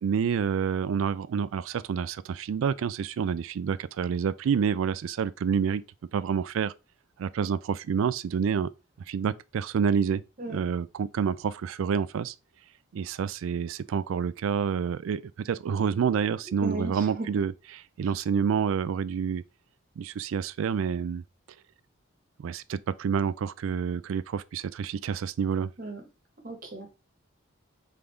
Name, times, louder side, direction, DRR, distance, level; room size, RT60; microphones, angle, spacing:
voice 1, 0.0-5.8 6.1-6.7 7.2-8.7 9.1-12.3 12.9-19.4 20.0-21.2 22.4-25.7, right 6 dB, 80° right, 0.3 m, -28 dB
voice 2, 16.6-17.3 25.8-26.0 26.4-26.9, right 1 dB, 45° right, 1.2 m, -36 dB
3.8 x 3.5 x 3.3 m
head